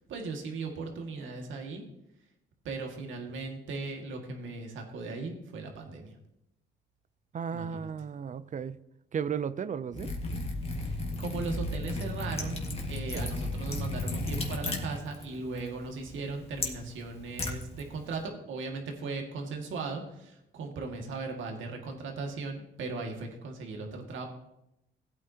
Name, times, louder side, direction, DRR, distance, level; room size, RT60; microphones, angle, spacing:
voice 1, 0.0-1.8 2.6-6.2 7.5-7.9 10.8-12.6 12.9-24.3, right 3 dB, 75° right, 2 dB, 2.1 m, -38 dB
voice 2, 7.3-8.8 9.1-10.1 13.1-13.3, right 7 dB, 40° right, 16 dB, 0.5 m, -34 dB
Liquid, 9.9-18.2, left 2 dB, 30° left, 2.0 m, -35 dB
16.0 x 8.6 x 2.9 m, 0.83 s
cardioid pair, 90°, 20 cm